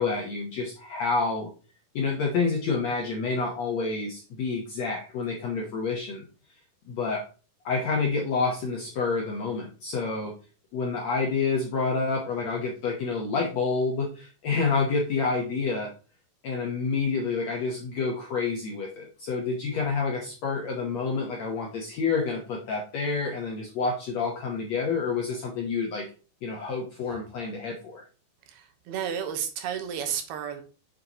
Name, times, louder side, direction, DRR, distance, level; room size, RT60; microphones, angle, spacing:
voice 1, 0.0-1.5 1.9-6.2 6.9-7.2 7.6-10.3 10.7-15.9 16.4-26.0 26.4-28.0, left 4 dB, 70° left, 0 dB, 1.7 m, -28 dB
voice 2, 28.5-30.6, right 8 dB, 80° right, 7 dB, 3.0 m, -32 dB
7.8 x 6.6 x 2.9 m, 0.36 s
omnidirectional pair, 4.5 m